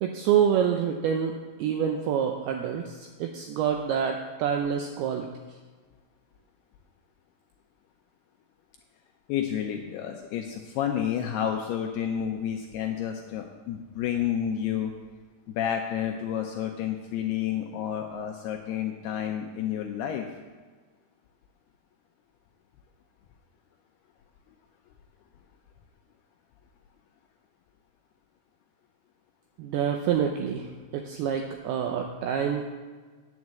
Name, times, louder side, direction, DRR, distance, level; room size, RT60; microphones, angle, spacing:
voice 1, 0.0-5.3 29.6-32.6, right 8 dB, 85° right, 3 dB, 2.2 m, -27 dB
voice 2, 9.3-14.9 15.5-20.3, left 9 dB, 80° left, 3 dB, 2.3 m, -30 dB
9.4 x 7.3 x 7.5 m, 1.4 s
omnidirectional pair, 5.3 m